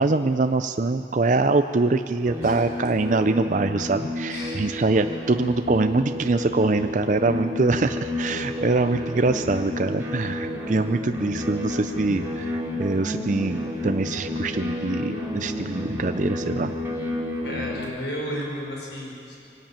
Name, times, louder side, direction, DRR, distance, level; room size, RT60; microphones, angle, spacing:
voice 1, 0.0-16.7, right 3 dB, 45° right, 8 dB, 0.5 m, -24 dB
sound 1, 2.2-17.8, left 1 dB, 15° right, 2.6 m, -31 dB
voice 2, 4.3-4.7 17.4-19.4, equal, 80° left, -1 dB, 5.6 m, -33 dB
23.5 x 13.0 x 9.0 m, 2.6 s
head